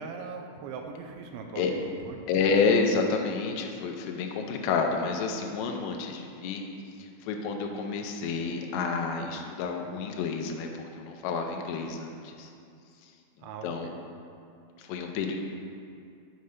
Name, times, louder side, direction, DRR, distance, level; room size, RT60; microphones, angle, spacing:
voice 1, 0.0-2.2 13.4-13.9, right 4 dB, 80° right, 3 dB, 2.9 m, -40 dB
voice 2, 2.3-6.6 7.0-12.5 13.4-13.9 14.8-15.4, left 4 dB, 80° left, 3 dB, 2.8 m, -29 dB
8.5 x 4.9 x 5.8 m, 2.4 s
omnidirectional pair, 5.4 m